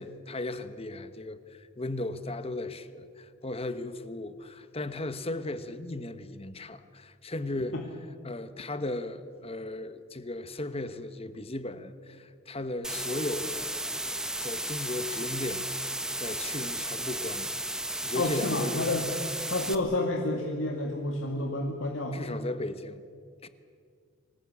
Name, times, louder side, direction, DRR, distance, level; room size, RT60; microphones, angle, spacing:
voice 1, 0.0-7.8 8.2-13.7 14.4-15.7 16.2-18.9 22.1-23.0 23.4-23.5, left 2 dB, 30° left, 11 dB, 1.2 m, -36 dB
sound 1, 12.8-19.8, right 1 dB, 5° right, 1.0 m, -34 dB
voice 2, 18.1-19.1 19.5-22.4, left 2 dB, 75° left, 1 dB, 2.3 m, -30 dB
25.5 x 18.5 x 8.5 m, 2.2 s
head